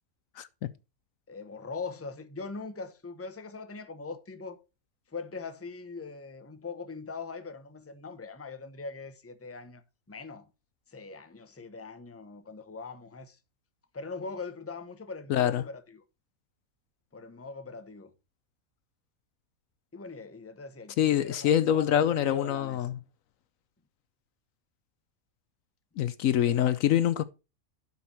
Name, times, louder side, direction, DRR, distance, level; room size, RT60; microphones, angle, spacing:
voice 1, 0.4-0.7 15.3-15.6 21.0-22.9 26.0-27.2, left 10 dB, 70° left, 1.0 m, -25 dB
voice 2, 1.3-4.6 5.1-9.8 10.1-10.5 10.9-13.4 13.9-16.0 17.1-18.1 19.9-22.9 26.5-26.7, left 4 dB, 10° left, 0.8 m, -41 dB
11.5 x 5.7 x 4.3 m
omnidirectional pair, 1.5 m